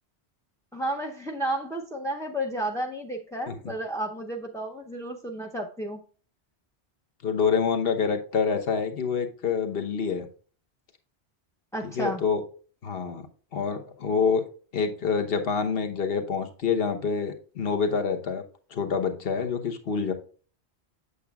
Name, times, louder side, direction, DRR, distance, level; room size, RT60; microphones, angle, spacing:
voice 1, 0.7-6.0 11.7-12.2, right 1 dB, 5° left, 0 dB, 0.4 m, -32 dB
voice 2, 7.2-10.3 12.0-12.4 12.8-13.3 13.5-14.4 14.7-18.4 18.7-20.1, left 5 dB, 60° left, 6 dB, 1.2 m, -26 dB
8.1 x 6.9 x 2.3 m, 0.40 s
omnidirectional pair, 1.1 m